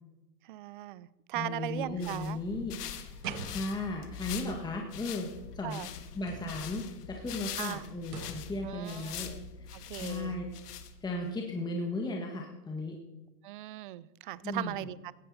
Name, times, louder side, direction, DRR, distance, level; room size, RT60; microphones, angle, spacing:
voice 1, 0.5-2.4 3.2-3.5 4.5-4.6 5.6-5.9 7.6-7.8 8.6-9.4 9.7-10.4 13.4-15.1, right 15 dB, 35° right, 20 dB, 0.4 m, -39 dB
voice 2, 1.3-3.1 3.5-5.3 5.5-5.9 6.1-9.3 9.6-10.4 11.0-13.0 14.4-14.7, left 2 dB, 10° left, 0 dB, 1.6 m, -36 dB
sound 1, 1.8-11.3, left 8 dB, 70° left, 1.7 m, -43 dB
sound 2, 3.1-4.0 6.2-6.8 8.0-8.6, right 3 dB, 90° right, 4.0 m, -44 dB
16.5 x 14.0 x 4.2 m, 1.0 s
hypercardioid pair, 130°, 49 cm